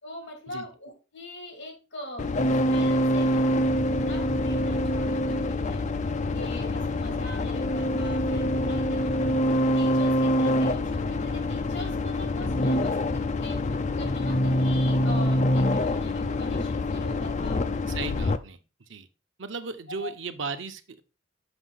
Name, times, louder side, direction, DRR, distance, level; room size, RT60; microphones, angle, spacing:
voice 1, 0.0-2.3 2.6-5.9 6.3-17.6 20.0-20.1, left 1 dB, 70° left, 3 dB, 3.3 m, -42 dB
sound 1, 2.2-18.4, left 1 dB, 40° left, 0.5 m, -25 dB
voice 2, 17.9-19.1 19.4-21.0, right 4 dB, 90° right, 7 dB, 0.9 m, -36 dB
7.0 x 5.4 x 4.0 m, 0.30 s
head